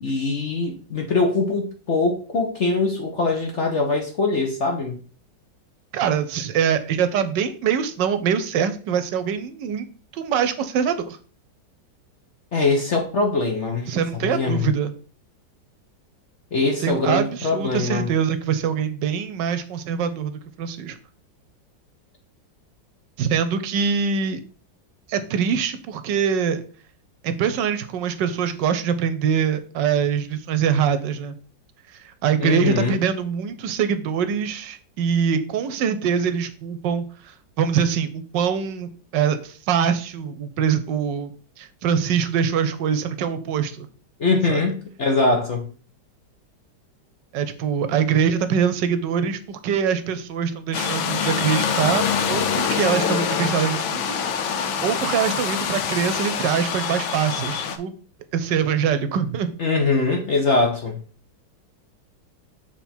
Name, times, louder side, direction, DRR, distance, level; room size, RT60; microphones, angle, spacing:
voice 1, 0.0-5.0 12.5-13.9 14.2-14.7 16.5-18.1 32.4-33.0 44.2-45.7 59.6-61.0, left 3 dB, 50° left, 2 dB, 0.9 m, -22 dB
voice 2, 5.9-9.9 10.1-11.2 13.9-14.9 16.8-21.0 23.2-24.4 25.1-26.6 27.2-31.4 31.9-41.3 41.6-43.9 44.5-44.6 47.3-54.2 54.5-57.9 58.3-59.5, right 7 dB, 75° right, 10 dB, 1.2 m, -24 dB
sound 1, 50.7-57.8, left 7 dB, 90° left, 1.5 m, -25 dB
7.3 x 3.5 x 4.3 m, 0.40 s
omnidirectional pair, 2.1 m